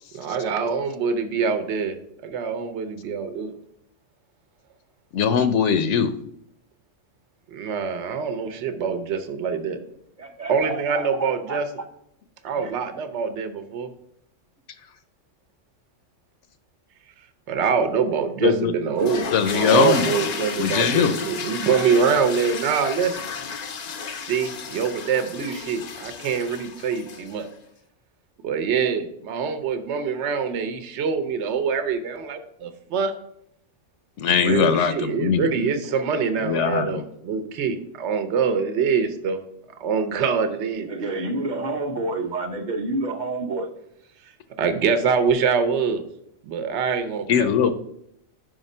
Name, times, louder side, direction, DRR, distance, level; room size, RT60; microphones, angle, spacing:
voice 1, 0.1-2.0 2.2-3.5 7.5-9.8 10.5-11.7 12.4-13.9 17.5-19.3 19.5-23.2 24.1-27.5 28.4-33.1 34.4-39.4 39.8-40.9 44.6-46.0 46.4-47.7, right 6 dB, 65° right, 9 dB, 1.0 m, -24 dB
voice 2, 5.1-6.1 18.4-18.7 19.3-20.2 20.6-21.2 34.2-35.7 36.4-37.0 47.3-47.7, left 7 dB, 75° left, 10 dB, 0.9 m, -21 dB
voice 3, 10.2-11.9 12.4-12.7 40.8-43.7, right 2 dB, 40° right, 5 dB, 0.8 m, -29 dB
sound 1, 19.0-27.4, left 5 dB, 55° left, 0.5 m, -32 dB
5.7 x 5.0 x 5.4 m, 0.75 s
omnidirectional pair, 1.3 m